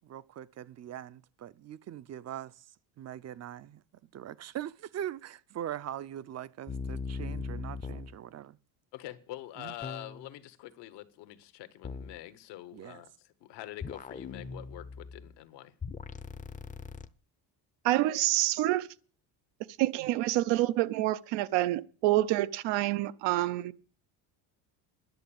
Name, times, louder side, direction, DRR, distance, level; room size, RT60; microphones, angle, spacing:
voice 1, 0.0-2.5 3.0-3.8 4.1-8.6 9.6-9.7 12.7-13.0, right 11 dB, 40° right, 0.5 m, -41 dB
sound 1, 6.7-8.2 9.8-10.4 11.8-12.2 13.8-15.3 15.8-17.1, left 4 dB, 20° left, 0.6 m, -39 dB
voice 2, 8.9-15.7, left 15 dB, 80° left, 1.3 m, -45 dB
voice 3, 17.8-18.9 19.8-23.7, right 16 dB, 85° right, 0.8 m, -27 dB
10.5 x 7.0 x 8.7 m
cardioid pair, 120°, 41 cm